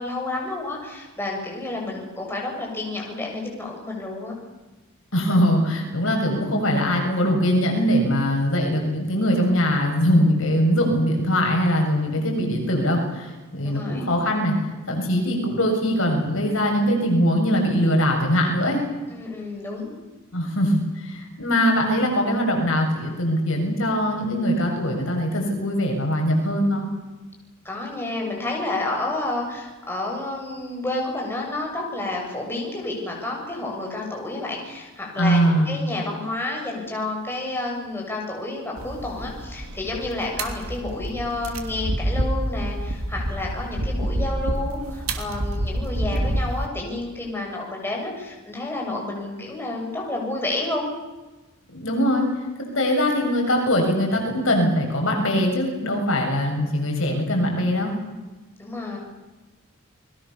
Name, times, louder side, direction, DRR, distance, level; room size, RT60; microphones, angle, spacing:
voice 1, 0.0-4.4 13.6-14.0 19.1-20.0 27.6-50.9 58.6-59.0, left 2 dB, 10° left, -1 dB, 7.2 m, -30 dB
voice 2, 5.1-14.5 14.9-18.8 20.3-26.9 35.2-35.8 51.7-52.3 52.6-57.9, equal, 65° left, 2 dB, 7.1 m, -22 dB
sound 1, 38.8-46.7, right 1 dB, 90° right, 3.1 m, -28 dB
30.0 x 21.5 x 7.2 m, 1.1 s
head